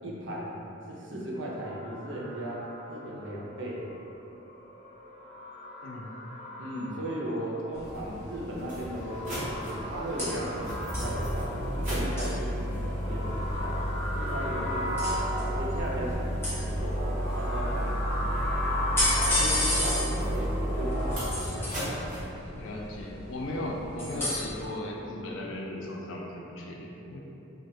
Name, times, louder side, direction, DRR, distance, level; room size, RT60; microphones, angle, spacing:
voice 1, 0.0-3.9 6.6-13.8 14.1-18.4 19.2-21.7, right 1 dB, 65° right, -4 dB, 0.5 m, -37 dB
sound 1, 1.3-21.2, equal, 30° left, 1.0 m, -37 dB
sound 2, 7.7-24.7, left 1 dB, 10° left, 0.6 m, -35 dB
sound 3, 8.0-8.1 8.6-22.2, equal, 40° right, 0.9 m, -32 dB
voice 2, 19.8-20.5 22.5-27.2, left 1 dB, 75° left, -1 dB, 0.4 m, -37 dB
3.1 x 2.2 x 2.7 m, 3.0 s
head